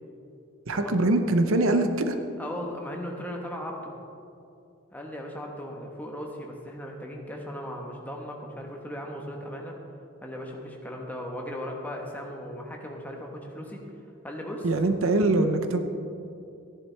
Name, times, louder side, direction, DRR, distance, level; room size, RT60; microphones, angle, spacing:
voice 1, 0.7-2.1 14.6-15.8, right 2 dB, 70° right, 7 dB, 0.7 m, -23 dB
voice 2, 2.4-4.0 4.9-9.8 10.2-13.9 14.2-14.7, equal, 10° left, 0 dB, 1.1 m, -37 dB
14.0 x 10.5 x 3.4 m, 2.6 s
head